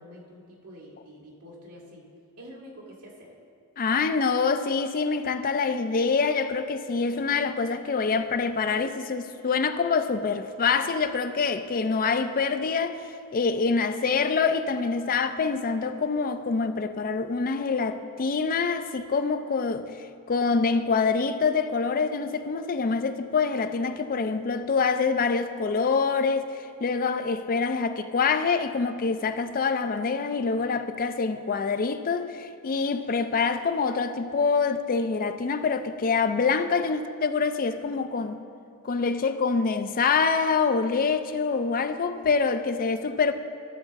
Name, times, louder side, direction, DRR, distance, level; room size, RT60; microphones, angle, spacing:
voice 1, 0.0-2.0 2.4-3.3, equal, 90° right, 2.0 m, -47 dB
voice 2, 3.8-13.0 13.3-19.9 20.3-38.4 38.8-43.3, left 5 dB, 40° left, 0.4 m, -25 dB
13.5 x 6.9 x 4.1 m
head